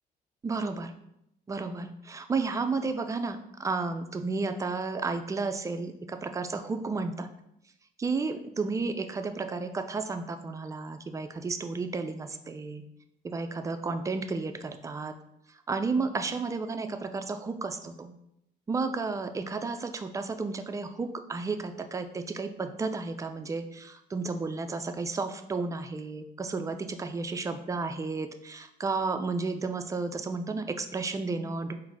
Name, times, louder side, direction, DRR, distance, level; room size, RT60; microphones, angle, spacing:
voice 1, 0.4-0.9 1.5-7.3 8.0-12.8 13.2-15.2 15.7-18.1 18.7-31.7, right 4 dB, 20° right, 8 dB, 0.3 m, -32 dB
3.8 x 2.6 x 4.5 m, 0.81 s
cardioid pair, 110°, 17 cm